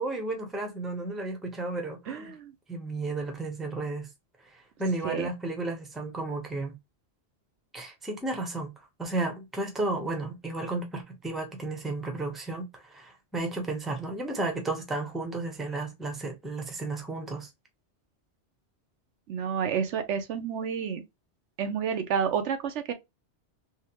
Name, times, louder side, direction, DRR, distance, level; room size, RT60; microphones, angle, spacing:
voice 1, 0.0-2.3 2.7-4.1 4.8-6.7 7.7-8.7 9.0-17.5, right 2 dB, ahead, 0.7 m, -33 dB
voice 2, 2.1-2.5 5.0-5.3 19.3-21.0 21.6-22.9, right 7 dB, 85° right, 1.0 m, -30 dB
3.5 x 2.2 x 2.8 m
omnidirectional pair, 1.2 m